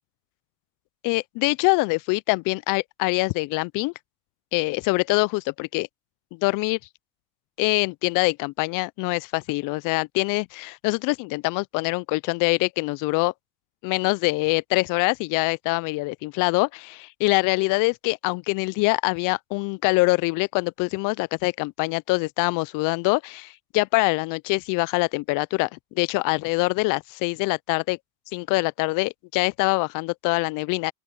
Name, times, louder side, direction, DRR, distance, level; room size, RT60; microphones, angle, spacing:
voice 1, 1.0-3.9 4.5-5.9 6.3-6.8 7.6-13.3 13.8-25.7 25.9-28.0 28.3-30.9, left 25 dB, 45° left, 0.6 m, -24 dB
open air
hypercardioid pair, 95°, 47 cm